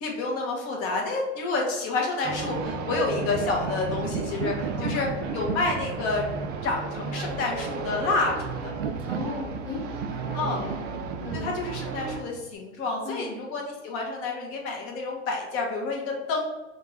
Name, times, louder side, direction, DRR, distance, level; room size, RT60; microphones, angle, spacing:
voice 1, 0.0-5.1 5.3-6.3 6.6-8.7 10.3-10.6 11.3-16.5, left 3 dB, 40° left, 0 dB, 1.2 m, -29 dB
sound 1, 2.2-12.2, right 4 dB, 30° right, 0.4 m, -34 dB
sound 2, 3.0-12.5, right 6 dB, 85° right, 0.6 m, -36 dB
voice 2, 9.0-10.9 11.2-11.5 13.0-13.4, left 2 dB, 10° left, -6 dB, 1.1 m, -37 dB
3.6 x 2.6 x 4.4 m, 1.1 s
hypercardioid pair, 115°, 35 cm